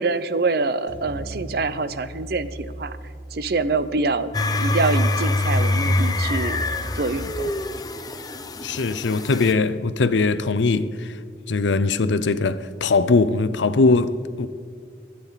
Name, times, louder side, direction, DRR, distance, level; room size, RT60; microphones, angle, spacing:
voice 1, 0.0-3.0 3.3-4.3 4.6-6.6 6.9-7.5, right 3 dB, 60° right, 0.6 m, -25 dB
sound 1, 0.9-5.2, right 1 dB, 80° right, 2.6 m, -39 dB
sound 2, 4.3-9.5, left 2 dB, 20° left, 0.6 m, -24 dB
voice 2, 8.6-11.1 11.5-14.5, left 3 dB, 90° left, 0.6 m, -21 dB
23.0 x 8.9 x 4.1 m
head